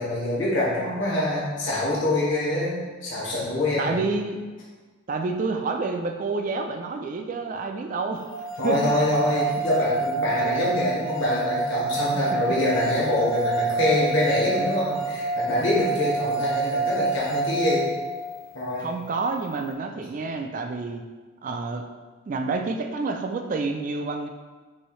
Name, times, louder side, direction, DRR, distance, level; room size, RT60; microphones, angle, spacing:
voice 1, 0.0-2.7 3.0-4.0 8.6-17.8 18.5-18.9, left 1 dB, 60° left, -7 dB, 1.2 m, -25 dB
voice 2, 3.8-4.4 5.1-8.3 8.6-9.0 9.5-9.6 12.2-12.4 18.8-21.0 21.4-21.8 22.3-24.3, right 3 dB, 40° right, 5 dB, 0.3 m, -28 dB
sound 1, 8.3-18.4, right 4 dB, 75° left, 0.5 m, -27 dB
6.3 x 2.7 x 3.0 m, 1.4 s
head